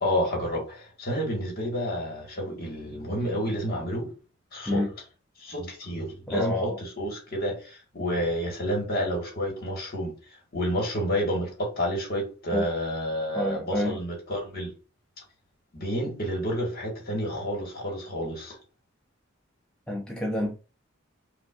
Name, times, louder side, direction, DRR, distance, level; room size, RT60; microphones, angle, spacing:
voice 1, 0.0-4.1 4.5-4.8 5.4-10.1 10.5-14.7 15.7-18.6, equal, 50° left, 1.5 m, -30 dB
voice 2, 6.3-6.8 12.5-12.7 13.3-14.0 19.9-20.6, left 1 dB, 5° left, 0.4 m, -28 dB
5.1 x 2.3 x 2.4 m
head